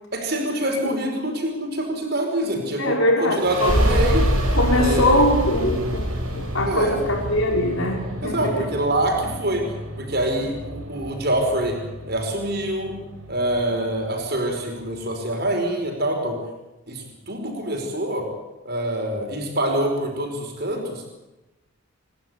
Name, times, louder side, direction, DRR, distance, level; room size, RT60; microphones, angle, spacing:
voice 1, 0.1-4.3 4.7-5.2 6.6-7.0 8.2-9.7 10.0-11.8 12.1-12.9 13.3-16.4 16.9-18.3 18.6-21.1, right 1 dB, 50° right, 2 dB, 5.1 m, -25 dB
voice 2, 2.8-3.8 4.6-8.7, left 1 dB, 70° left, 0 dB, 5.4 m, -22 dB
sound 1, 3.3-14.6, right 1 dB, 85° right, 6.3 m, -27 dB
27.5 x 12.0 x 9.6 m, 1.0 s
head